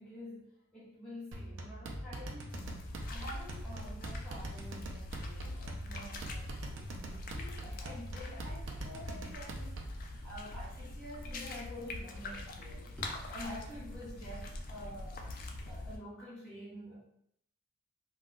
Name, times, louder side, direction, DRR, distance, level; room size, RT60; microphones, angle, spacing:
voice 1, 0.0-2.7 3.1-15.4 15.6-17.0, left 1 dB, 5° left, -9 dB, 0.9 m, -48 dB
sound 1, 1.3-10.0, right 1 dB, 85° right, 0.5 m, -43 dB
sound 2, 2.5-16.0, left 2 dB, 45° left, 0.4 m, -44 dB
2.3 x 2.2 x 3.8 m, 0.71 s
head